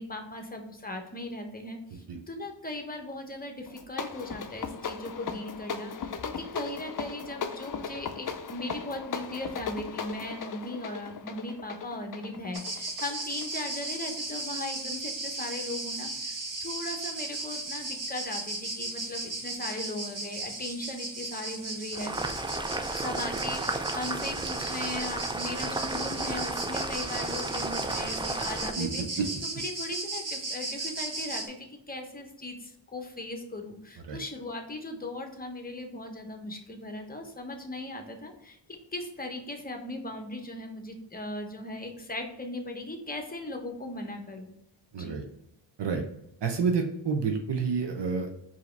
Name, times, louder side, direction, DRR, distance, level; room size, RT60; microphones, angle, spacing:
voice 1, 0.0-22.2 22.9-38.6 38.9-44.5 45.0-45.2, left 1 dB, 20° left, 4 dB, 0.9 m, -38 dB
sound 1, 3.7-14.0, left 6 dB, 45° left, 0.5 m, -37 dB
sound 2, 12.5-31.5, right 2 dB, 45° right, 1.3 m, -36 dB
Boiling, 21.9-28.7, right 2 dB, 10° right, 0.3 m, -33 dB
voice 2, 44.9-45.2 45.8-46.0 46.4-48.3, right 5 dB, 65° right, 4 dB, 0.7 m, -28 dB
4.7 x 2.9 x 3.3 m, 0.79 s
wide cardioid pair, 75°, 44 cm